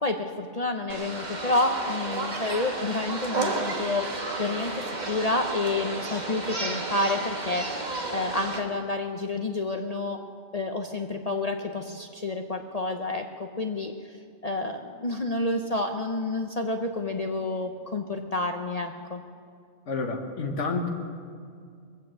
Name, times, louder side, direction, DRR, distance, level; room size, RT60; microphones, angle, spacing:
voice 1, 0.0-7.7 8.1-10.2 10.5-13.9 14.4-19.2, left 2 dB, 40° left, 4 dB, 0.7 m, -29 dB
sound 1, 0.9-8.6, right 2 dB, 35° right, 1.6 m, -32 dB
voice 2, 19.9-20.9, left 3 dB, 70° left, 2 dB, 1.7 m, -29 dB
21.5 x 8.3 x 7.6 m, 2.3 s
omnidirectional pair, 1.3 m